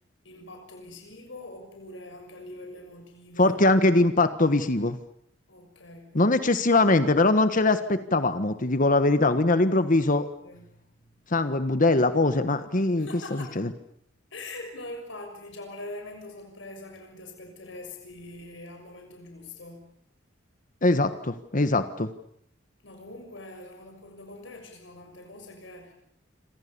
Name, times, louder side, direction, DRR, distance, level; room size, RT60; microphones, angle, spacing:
voice 1, 0.2-3.6 5.5-6.3 10.4-11.2 13.0-13.6 14.3-19.9 22.8-25.9, left 2 dB, 70° left, 4 dB, 6.5 m, -43 dB
voice 2, 3.4-5.0 6.1-10.3 11.3-13.7 20.8-22.1, left 2 dB, 45° left, 10 dB, 1.4 m, -22 dB
28.0 x 26.0 x 7.0 m, 0.69 s
head